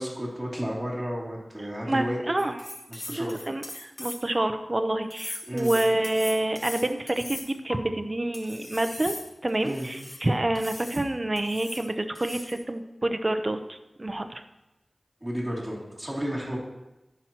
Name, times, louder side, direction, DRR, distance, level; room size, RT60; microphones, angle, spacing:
voice 1, 0.0-2.4 2.9-3.4 5.5-5.7 9.6-9.9 15.2-16.6, equal, 15° right, -6 dB, 2.8 m, -32 dB
voice 2, 1.9-2.6 3.1-9.2 9.4-14.3, right 1 dB, 40° right, 8 dB, 0.7 m, -28 dB
sound 1, 2.4-4.4 5.1-7.8 8.3-10.2 10.6-11.0 11.4-11.9 12.1-12.6, left 1 dB, 50° left, 1.5 m, -39 dB
14.0 x 6.1 x 2.9 m, 0.99 s
wide cardioid pair, 50°, 0 cm